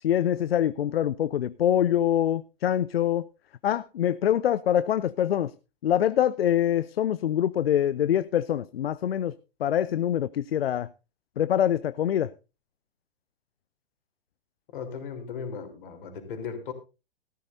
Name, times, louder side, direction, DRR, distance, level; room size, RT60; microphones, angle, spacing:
voice 1, 0.0-3.3 3.6-5.5 5.8-9.3 9.6-10.9 11.4-12.3, left 10 dB, 75° left, 0.6 m, -24 dB
voice 2, 14.7-16.7, left 6 dB, 55° left, 3.5 m, -37 dB
16.0 x 13.5 x 2.7 m
hypercardioid pair, 120°, 30 cm